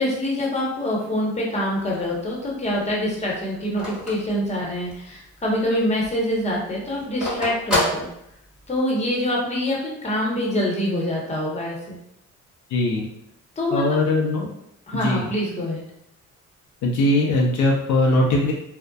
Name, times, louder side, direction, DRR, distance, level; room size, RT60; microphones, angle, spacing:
voice 1, 0.0-8.1 8.7-11.9 13.6-14.0 14.9-15.8, left 1 dB, 20° left, -3 dB, 0.9 m, -25 dB
Telephone, 1.9-5.2 5.6-5.7 5.9-8.8, left 1 dB, 5° right, 1.2 m, -28 dB
voice 2, 12.7-13.1 13.7-14.5 14.9-15.3 16.8-18.5, left 2 dB, 75° left, -1 dB, 0.6 m, -20 dB
2.6 x 2.1 x 2.3 m, 0.78 s
cardioid pair, 90°, 30 cm